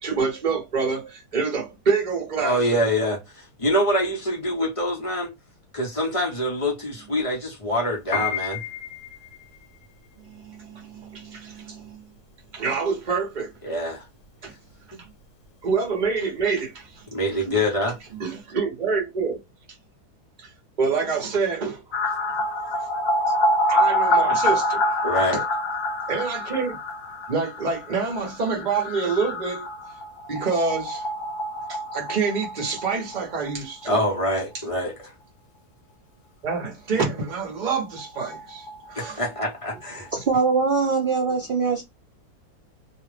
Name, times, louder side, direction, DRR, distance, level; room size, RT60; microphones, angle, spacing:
voice 1, 0.0-2.6 10.3-12.0 12.5-13.5 14.4-14.5 15.6-17.0 18.1-19.4 20.4-20.5 20.8-21.8 23.7-24.8 26.1-26.8 27.3-29.7 30.3-31.0 31.7-34.0 36.4-39.2, right 5 dB, 35° right, 1.0 m, -27 dB
voice 2, 2.4-5.3 5.7-8.6 13.6-14.0 17.1-18.0 25.0-25.4 33.8-35.1 39.0-40.1, equal, 25° left, 0.8 m, -25 dB
Piano, 8.0-18.4, left 8 dB, 60° left, 1.0 m, -36 dB
sound 1, 21.9-33.5 33.8-33.9 34.2-34.3 37.3-37.4 37.6-37.7 38.0-39.7 40.1-40.2, left 1 dB, 75° left, 1.2 m, -26 dB
voice 3, 40.1-41.8, right 4 dB, 90° right, 0.4 m, -22 dB
2.9 x 2.4 x 3.3 m
omnidirectional pair, 1.7 m